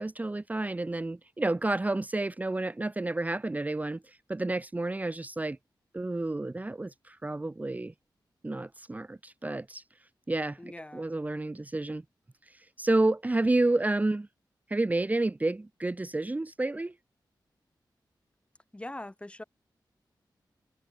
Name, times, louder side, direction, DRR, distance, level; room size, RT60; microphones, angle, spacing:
voice 1, 0.0-5.6 5.9-7.9 8.4-9.8 10.3-12.0 12.5-14.3 14.7-16.9, right 2 dB, 20° right, 1.0 m, -30 dB
voice 2, 10.6-11.1 18.7-19.4, left 1 dB, 15° left, 2.2 m, -42 dB
wide cardioid pair, 115°, 8 cm